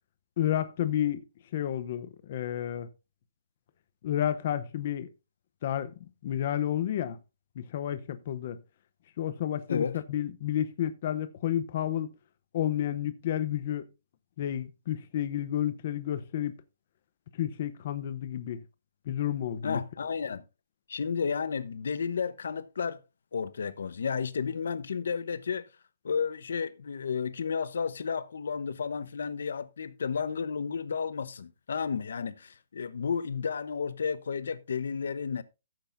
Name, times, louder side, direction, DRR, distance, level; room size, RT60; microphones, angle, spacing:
voice 1, 0.4-1.2 1.5-2.9 4.0-5.1 5.6-5.9 6.2-7.2 7.6-8.6 9.2-12.1 12.5-13.9 14.4-16.6 17.3-18.6 19.1-19.8, left 11 dB, 35° left, 0.7 m, -31 dB
voice 2, 19.6-20.4 20.9-23.0 23.3-25.7 26.0-35.4, left 6 dB, 75° left, 0.9 m, -32 dB
14.5 x 7.7 x 2.6 m
hypercardioid pair, 180°, 0 cm